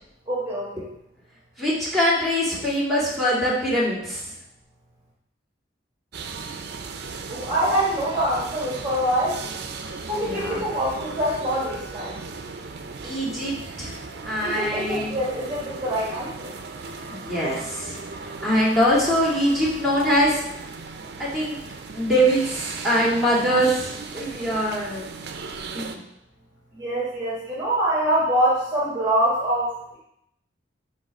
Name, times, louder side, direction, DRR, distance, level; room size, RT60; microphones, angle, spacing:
voice 1, 0.3-0.9 7.3-9.4 10.1-12.2 14.4-16.5 26.7-30.0, right 1 dB, 20° right, -6 dB, 1.6 m, -25 dB
voice 2, 1.6-4.3 10.2-10.6 13.0-13.9 14.3-15.2 17.1-18.0 18.4-20.4 21.2-21.6 21.9-25.1 25.7-26.0, equal, ahead, -6 dB, 2.4 m, -23 dB
sound 1, 6.1-26.0, right 4 dB, 60° right, 0.6 m, -37 dB
8.2 x 3.3 x 5.3 m, 0.78 s
head